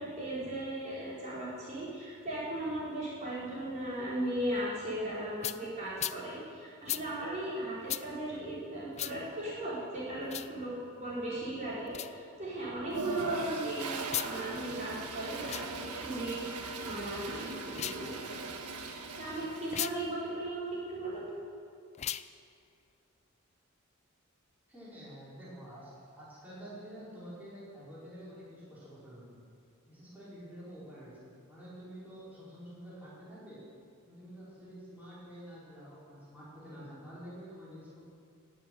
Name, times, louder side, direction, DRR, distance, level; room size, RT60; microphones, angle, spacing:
voice 1, 0.0-18.5 18.9-21.3, right 1 dB, 35° right, -9 dB, 5.0 m, -37 dB
sound 1, 5.4-5.6 6.0-6.2 6.9-7.0 7.9-8.0 9.0-9.1 10.2-10.5 11.9-12.1 14.0-14.3 15.4-15.7 17.7-18.0 19.7-19.9 21.9-22.3, left 12 dB, 30° left, 0.3 m, -36 dB
Toilet flush, 12.9-20.1, right 3 dB, 90° right, 1.4 m, -40 dB
voice 2, 24.7-29.5 29.8-33.6 34.0-38.0, equal, 5° right, -10 dB, 5.1 m, -48 dB
16.0 x 7.7 x 9.5 m, 2.3 s
head